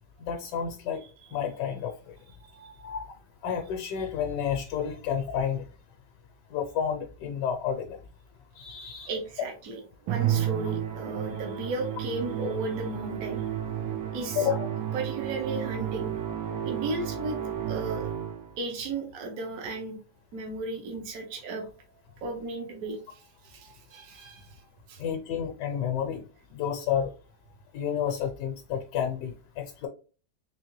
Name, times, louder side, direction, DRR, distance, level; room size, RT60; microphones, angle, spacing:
voice 1, 0.2-1.0 1.3-2.1 2.8-3.2 3.4-5.6 6.5-8.0 8.6-9.1 14.4-14.7 25.0-26.2 26.5-27.1 27.7-29.9, left 8 dB, 75° left, 5 dB, 1.2 m, -30 dB
voice 2, 2.4-2.9 9.1-13.5 14.1-14.5 14.9-16.1 16.6-17.4 17.6-18.1 18.6-20.0 20.3-21.6 22.2-24.6 24.9-25.0, right 3 dB, 60° right, 2 dB, 1.2 m, -35 dB
Musical instrument, 10.1-18.6, right 10 dB, 85° right, 1.3 m, -32 dB
3.7 x 3.1 x 3.0 m, 0.38 s
omnidirectional pair, 1.9 m